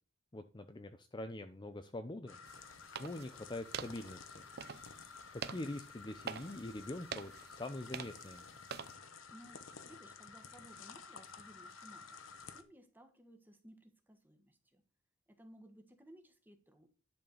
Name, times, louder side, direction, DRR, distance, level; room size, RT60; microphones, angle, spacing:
voice 1, 0.3-2.4 2.6-4.5 5.3-8.4, left 1 dB, 20° left, 8 dB, 0.6 m, -44 dB
sound 1, 2.3-12.6, left 5 dB, 70° left, 1.0 m, -53 dB
sound 2, 2.4-8.9, right 7 dB, 50° right, 0.6 m, -48 dB
voice 2, 9.3-12.2 12.5-14.8 15.3-16.9, right 1 dB, 10° right, 5 dB, 1.5 m, -59 dB
11.0 x 4.4 x 7.0 m, 0.34 s
head